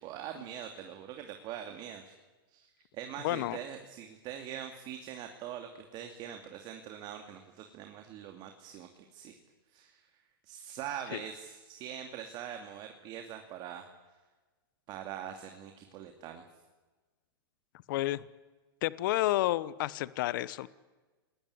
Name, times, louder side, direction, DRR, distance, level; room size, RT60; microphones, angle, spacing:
voice 1, 0.0-2.1 2.5-2.7 2.9-9.4 9.7-10.1 10.4-13.9 14.9-16.4, right 9 dB, 35° right, 5 dB, 2.6 m, -43 dB
voice 2, 3.2-3.6 11.1-11.2 17.9-18.2 18.8-20.7, left 16 dB, 60° left, 18 dB, 1.1 m, -30 dB
29.0 x 21.0 x 9.6 m, 1.3 s
hypercardioid pair, 135°, 12 cm